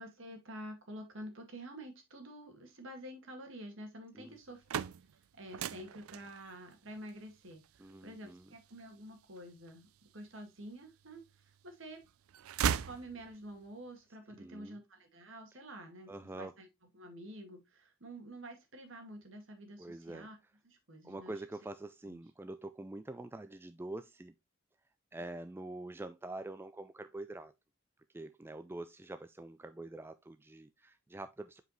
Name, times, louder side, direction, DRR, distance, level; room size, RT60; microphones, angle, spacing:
voice 1, 0.0-12.0 12.8-16.7 16.9-20.4 20.6-21.4 22.1-22.2, right 1 dB, 60° right, 2.1 m, -49 dB
sound 1, 4.4-10.3 10.9-11.7 12.0-13.6, right 8 dB, 85° right, 0.4 m, -39 dB
voice 2, 7.8-8.5 14.4-14.8 16.1-16.5 19.8-20.3 21.0-24.3 25.1-27.5 28.1-31.6, right 2 dB, 10° right, 0.3 m, -45 dB
7.9 x 4.9 x 3.1 m
head